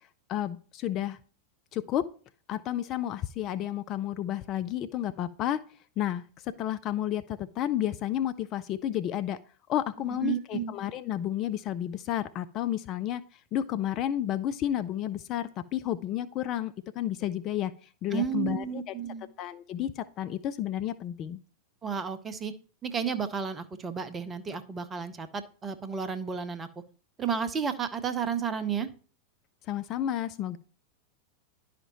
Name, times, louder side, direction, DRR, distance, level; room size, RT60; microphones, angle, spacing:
voice 1, 0.3-1.2 1.7-2.0 2.5-5.6 6.0-9.4 9.7-13.2 13.5-17.7 18.0-18.8 19.4-21.4 29.7-30.6, left 11 dB, 35° left, 12 dB, 0.3 m, -31 dB
voice 2, 10.2-10.7 18.1-19.3 21.8-22.5 22.8-26.7 27.2-28.9, right 7 dB, 20° right, 12 dB, 0.7 m, -32 dB
11.0 x 5.0 x 2.9 m, 0.40 s
figure-of-eight pair, 90°, 0 cm